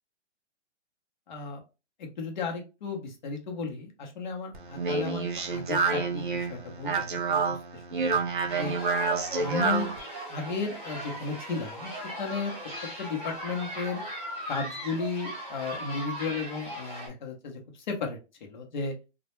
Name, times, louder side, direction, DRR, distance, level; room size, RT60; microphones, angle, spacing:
voice 1, 1.3-1.6 2.0-8.7 9.4-9.9 10.3-11.9 12.2-12.5 13.0-14.0 14.5-18.2 18.5-18.9, left 4 dB, 40° left, 1 dB, 0.6 m, -34 dB
Speech, 4.5-10.0, right 4 dB, 45° right, 0.4 m, -28 dB
sound 1, 8.5-17.1, equal, 10° right, 0.7 m, -38 dB
2.1 x 2.1 x 2.9 m, 0.29 s
hypercardioid pair, 170°, 35 cm